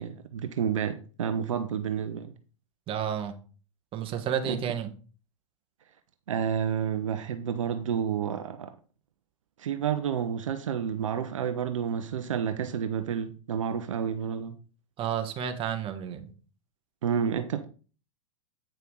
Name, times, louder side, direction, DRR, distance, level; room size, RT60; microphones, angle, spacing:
voice 1, 0.0-2.3 4.5-4.6 6.3-8.7 9.6-14.6 17.0-17.7, right 8 dB, 75° right, 0.8 m, -30 dB
voice 2, 2.9-3.3 3.9-4.9 15.0-16.3, right 8 dB, 35° right, 1.5 m, -31 dB
8.9 x 5.6 x 3.8 m
hypercardioid pair, 100°, 17 cm